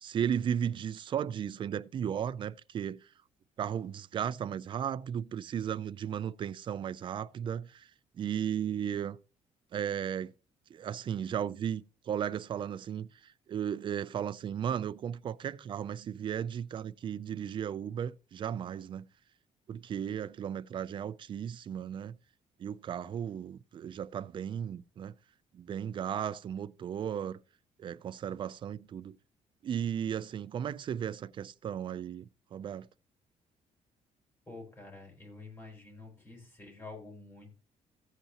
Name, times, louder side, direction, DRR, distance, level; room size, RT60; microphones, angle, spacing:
voice 1, 0.0-3.0 3.6-7.9 8.2-9.2 9.7-10.3 10.7-19.1 19.7-22.1 22.6-25.1 25.5-27.4 27.8-29.2 29.6-32.2 32.5-32.9, right 9 dB, 40° right, 0.4 m, -35 dB
voice 2, 34.5-37.6, left 3 dB, 20° left, 4.6 m, -48 dB
14.5 x 8.3 x 2.9 m
cardioid pair, 145°, 13 cm